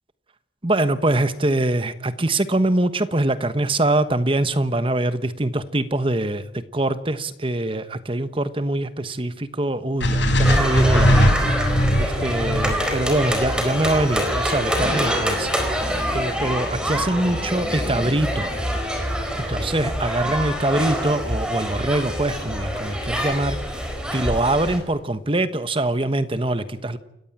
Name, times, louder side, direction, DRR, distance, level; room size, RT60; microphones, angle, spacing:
voice 1, 0.6-11.5 12.0-15.5 16.1-18.5 19.4-23.8 24.1-27.0, right 1 dB, 30° right, 12 dB, 1.2 m, -23 dB
sound 1, 10.0-14.2, equal, 70° left, 4.8 m, -20 dB
sound 2, 10.4-24.8, equal, 5° right, 4.2 m, -25 dB
29.0 x 15.0 x 8.8 m, 0.84 s
head